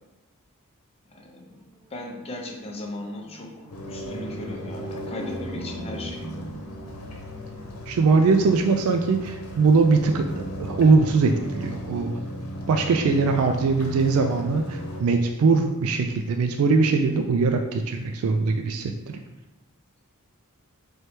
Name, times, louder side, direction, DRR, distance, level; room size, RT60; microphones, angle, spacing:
voice 1, 1.1-1.6 1.9-6.3, left 1 dB, 25° left, 0 dB, 0.7 m, -37 dB
sound 1, 1.6-11.2, right 1 dB, 20° right, 0.9 m, -42 dB
sound 2, 3.7-15.0, equal, 85° left, 0.9 m, -37 dB
voice 2, 7.9-12.1 12.7-19.2, right 4 dB, 70° right, 4 dB, 0.3 m, -21 dB
4.4 x 3.1 x 3.2 m, 1.1 s
head